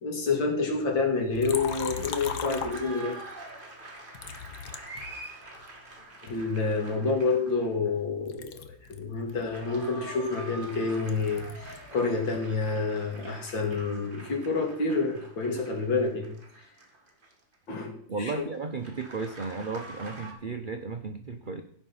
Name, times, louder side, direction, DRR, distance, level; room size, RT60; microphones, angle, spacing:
voice 1, 0.0-3.2 6.2-8.6 8.9-16.3 17.7-18.4, left 4 dB, 80° left, 2 dB, 3.0 m, -28 dB
Liquid, 1.3-3.3 4.1-5.7 6.3-8.0 8.3-12.0 12.2-13.9, left 7 dB, 65° left, 1.4 m, -40 dB
sound 1, 1.3-7.9 9.2-17.5 18.8-20.3, right 2 dB, 30° right, 2.0 m, -45 dB
voice 2, 18.1-21.6, right 4 dB, 60° right, 7 dB, 0.5 m, -34 dB
16.0 x 5.3 x 5.6 m, 0.63 s
omnidirectional pair, 2.0 m